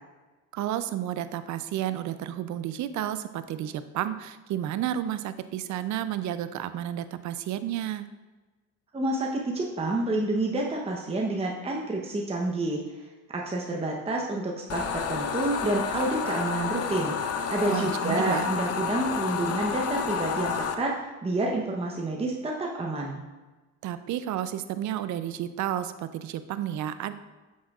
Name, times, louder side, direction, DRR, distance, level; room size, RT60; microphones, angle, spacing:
voice 1, 0.5-8.1 17.7-18.5 23.8-27.1, right 11 dB, 60° right, 12 dB, 0.5 m, -31 dB
voice 2, 8.9-17.1 17.5-23.2, right 2 dB, 20° right, -1 dB, 0.8 m, -29 dB
sound 1, 14.7-20.7, left 7 dB, 45° left, 0.7 m, -30 dB
7.2 x 6.2 x 2.4 m, 1.2 s
supercardioid pair, 75°, 33 cm